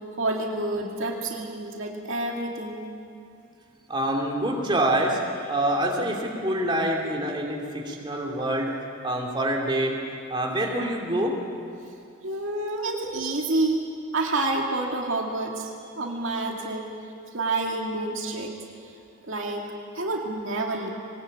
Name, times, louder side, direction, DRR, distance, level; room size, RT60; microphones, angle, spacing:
voice 1, 0.2-2.9 12.2-13.8 14.1-16.9 17.3-18.6 19.2-19.6 19.9-20.9, right 2 dB, 65° right, 0 dB, 2.4 m, -28 dB
voice 2, 3.9-8.7 9.0-10.0 10.3-11.3 12.9-13.0 16.3-16.4, right 1 dB, 20° right, -1 dB, 2.9 m, -26 dB
22.0 x 19.5 x 8.8 m, 2.5 s
head